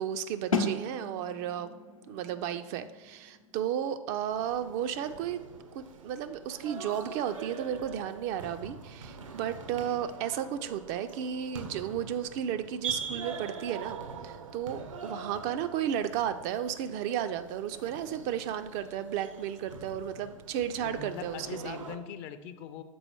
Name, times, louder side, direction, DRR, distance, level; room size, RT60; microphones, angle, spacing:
voice 1, 0.0-1.7 2.1-5.4 5.7-21.8, right 9 dB, 40° right, 10 dB, 0.4 m, -33 dB
sound 1, 0.5-6.2, left 3 dB, 90° left, 0.8 m, -37 dB
sound 2, 4.3-22.0, right 5 dB, 75° right, 0.7 m, -43 dB
voice 2, 20.8-22.8, left 7 dB, 40° left, 10 dB, 0.5 m, -41 dB
6.9 x 3.9 x 4.4 m, 1.1 s
figure-of-eight pair, 95°, 17 cm